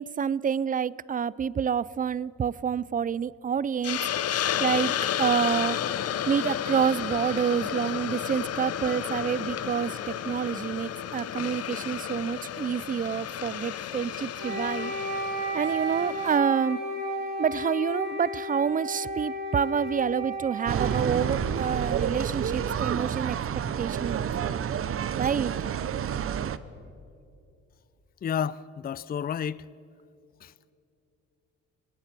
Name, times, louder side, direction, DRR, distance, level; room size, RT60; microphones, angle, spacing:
voice 1, 0.0-4.0 4.3-4.9 5.2-5.8 6.3-14.9 15.5-16.8 17.4-23.4 23.8-24.6 25.2-25.5, right 7 dB, 30° right, 0.4 m, -28 dB
Hiss, 3.8-16.4, left 9 dB, 55° left, 0.8 m, -32 dB
Wind instrument woodwind instrument, 14.4-22.4, equal, 60° right, 6.5 m, -34 dB
sound 1, 20.7-26.6, right 8 dB, 45° right, 0.8 m, -29 dB
voice 2, 28.2-29.6 30.4-30.5, left 8 dB, 30° left, 0.4 m, -31 dB
22.5 x 19.0 x 6.1 m
cardioid pair, 90°, 30 cm